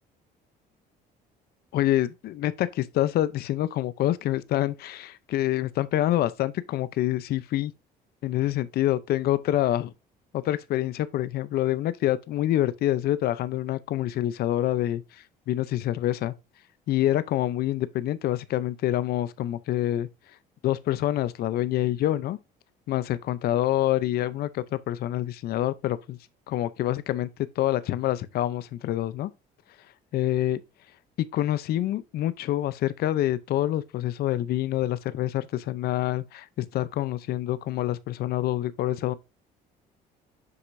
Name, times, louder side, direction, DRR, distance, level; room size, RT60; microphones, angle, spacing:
voice 1, 1.7-7.7 8.2-9.9 10.3-16.3 16.9-20.1 20.6-22.4 22.9-26.2 26.5-27.3 27.6-29.3 30.1-30.6 31.2-39.1, left 13 dB, 65° left, 0.6 m, -26 dB
7.8 x 6.0 x 2.6 m
cardioid pair, 110°, 17 cm